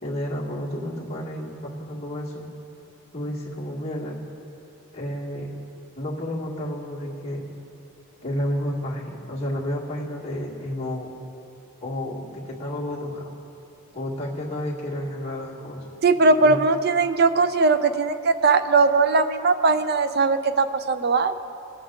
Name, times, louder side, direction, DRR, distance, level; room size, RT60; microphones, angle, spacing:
voice 1, 0.0-2.4 3.1-4.1 4.9-5.5 6.0-7.4 8.2-11.1 11.8-13.3 13.9-15.9 16.4-16.6, left 1 dB, 30° left, -5 dB, 1.8 m, -31 dB
voice 2, 16.0-21.3, right 3 dB, 45° right, 11 dB, 0.5 m, -19 dB
20.0 x 7.9 x 3.8 m, 2.8 s
head